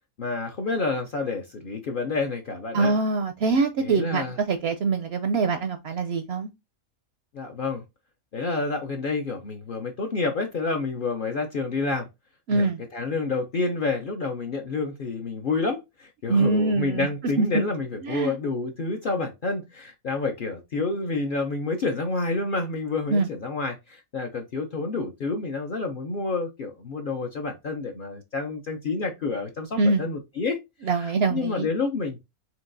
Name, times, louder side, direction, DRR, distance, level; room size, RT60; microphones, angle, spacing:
voice 1, 0.2-2.9 3.8-4.4 7.3-7.8 8.3-12.1 12.5-12.7 12.9-30.6 30.9-32.2, left 3 dB, 55° left, 0.6 m, -29 dB
voice 2, 2.7-6.5 12.5-12.8 16.3-17.1 17.4-17.6 18.0-18.3 23.1-23.3 29.8-30.0 30.8-31.7, right 3 dB, 65° right, 0.6 m, -24 dB
4.5 x 3.6 x 2.5 m
omnidirectional pair, 1.5 m